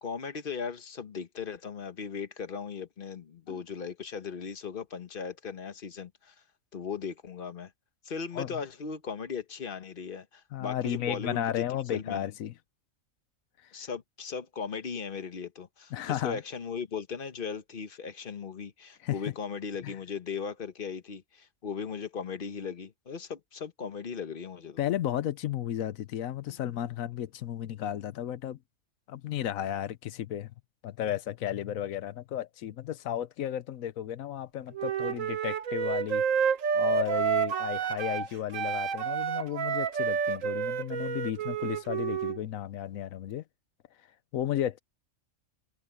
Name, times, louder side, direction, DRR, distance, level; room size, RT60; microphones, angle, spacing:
voice 1, 0.0-6.3 6.7-7.7 8.0-12.3 13.7-24.8, left 6 dB, 45° left, 1.2 m, -38 dB
voice 2, 10.5-12.5 15.9-16.4 19.0-19.2 19.8-19.9 24.8-28.6 29.1-30.5 30.8-36.2 36.7-43.4 44.3-44.8, left 11 dB, 80° left, 1.1 m, -33 dB
Wind instrument woodwind instrument, 34.7-38.3 38.5-42.4, right 7 dB, 70° right, 1.4 m, -29 dB
omnidirectional pair, 1.4 m